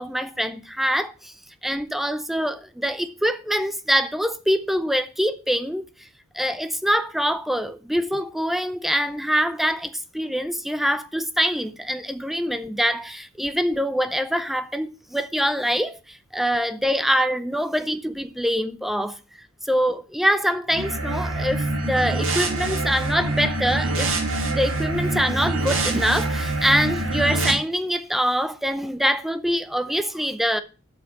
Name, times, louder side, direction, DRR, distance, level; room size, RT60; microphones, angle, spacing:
voice 1, 0.0-1.3 1.6-5.8 6.3-19.2 19.6-24.1 24.5-30.6, equal, ahead, 0.6 m, -24 dB
sound 1, 20.7-27.5, right 2 dB, 75° right, 2.7 m, -25 dB
8.2 x 6.0 x 7.7 m
head